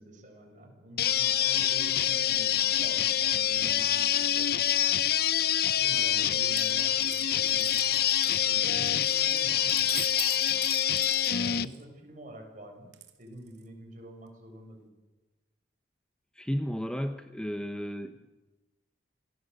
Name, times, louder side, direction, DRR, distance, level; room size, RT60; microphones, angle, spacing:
voice 1, 0.0-5.0 5.7-8.0 8.4-10.6 11.4-12.9 13.2-14.9 18.1-18.2, equal, 40° right, 2 dB, 7.1 m, -48 dB
sound 1, 1.0-11.7, left 10 dB, 55° left, 0.8 m, -26 dB
Coin (dropping), 6.4-11.8 12.9-13.6, right 13 dB, 65° right, 2.5 m, -43 dB
voice 2, 16.4-18.2, equal, 5° left, 7 dB, 0.9 m, -33 dB
27.5 x 19.5 x 8.1 m, 1.1 s
head